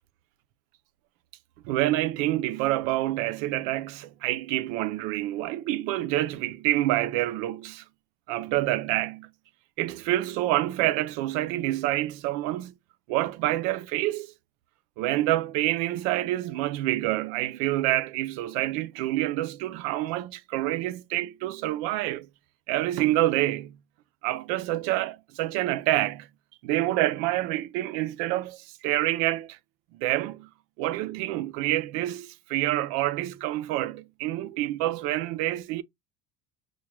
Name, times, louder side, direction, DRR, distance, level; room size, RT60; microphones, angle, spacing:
voice 1, 1.6-7.8 8.3-9.3 9.8-12.7 13.1-14.3 15.0-22.3 22.7-23.8 24.2-26.3 26.6-29.6 29.9-30.5 30.8-35.8, right 15 dB, 70° right, 0.4 m, -27 dB
4.7 x 2.2 x 3.1 m
supercardioid pair, 110°, 19 cm